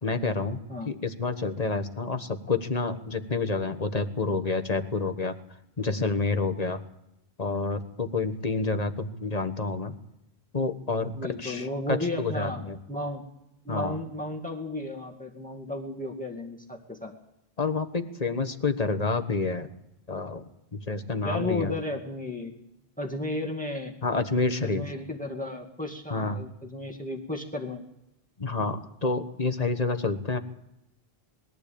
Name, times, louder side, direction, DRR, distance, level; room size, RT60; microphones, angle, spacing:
voice 1, 0.0-5.3 5.8-6.8 7.4-9.9 10.5-12.8 13.7-14.0 17.6-19.7 20.1-20.4 20.7-21.7 24.0-24.8 26.1-26.4 28.4-30.4, left 3 dB, 40° left, 8 dB, 1.4 m, -28 dB
voice 2, 11.1-12.6 12.9-13.2 13.6-17.1 21.2-22.6 23.0-23.9 24.6-27.8, left 2 dB, 10° left, 2 dB, 2.1 m, -33 dB
21.0 x 15.0 x 8.6 m, 0.86 s
omnidirectional pair, 1.1 m